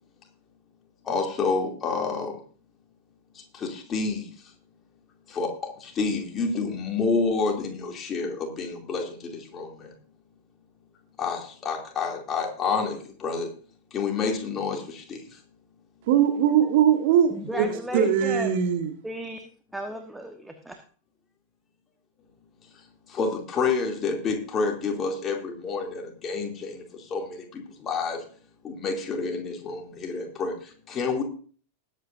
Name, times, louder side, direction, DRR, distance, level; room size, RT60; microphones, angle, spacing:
voice 1, 1.0-2.4 3.3-4.3 5.3-9.9 11.2-13.5 13.9-15.4 17.5-18.0 23.1-28.2 28.6-31.2, left 4 dB, 25° left, 2 dB, 2.7 m, -29 dB
voice 2, 16.1-18.9, right 9 dB, 50° right, 5 dB, 1.5 m, -21 dB
voice 3, 17.3-18.6 19.0-19.4 19.7-20.8, right 1 dB, 5° right, 5 dB, 1.2 m, -35 dB
20.0 x 8.4 x 2.6 m, 0.41 s
figure-of-eight pair, 90°, 0 cm